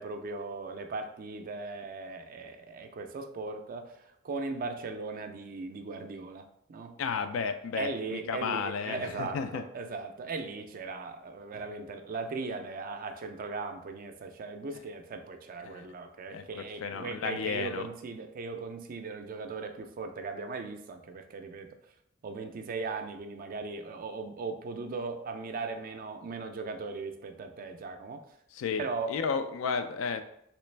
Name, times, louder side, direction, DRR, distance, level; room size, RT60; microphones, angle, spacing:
voice 1, 0.0-7.0 7.8-21.7 22.2-28.2 28.8-29.1, right 3 dB, 45° right, 6 dB, 0.4 m, -38 dB
voice 2, 7.0-9.6 15.6-15.9 16.3-17.9 28.5-30.2, left 5 dB, 75° left, 9 dB, 0.3 m, -33 dB
3.3 x 3.0 x 3.2 m, 0.75 s
head